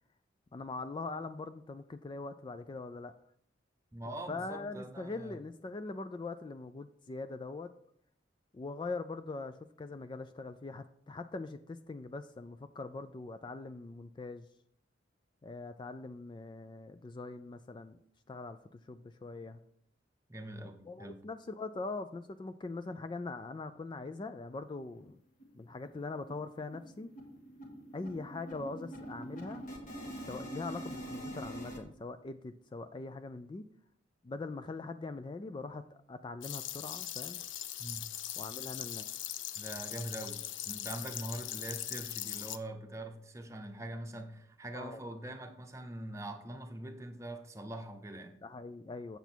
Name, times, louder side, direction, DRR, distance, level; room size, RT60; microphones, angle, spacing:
voice 1, 0.5-3.1 4.1-7.7 8.5-14.5 15.4-18.0 18.3-19.6 20.8-25.2 25.5-27.1 27.9-29.6 30.3-33.6 34.2-37.4 38.4-39.0 44.7-45.0 48.4-49.2, left 3 dB, 25° left, 0.3 m, -42 dB
voice 2, 3.9-5.4 20.3-21.2 37.8-38.1 39.6-48.4, right 1 dB, 15° right, 0.9 m, -43 dB
sound 1, 24.5-24.6 25.0-25.1 25.4-25.6 25.8-31.8, right 1 dB, 45° left, 1.8 m, -45 dB
sound 2, 36.4-42.6, left 12 dB, 80° left, 0.5 m, -40 dB
8.2 x 6.8 x 4.4 m
head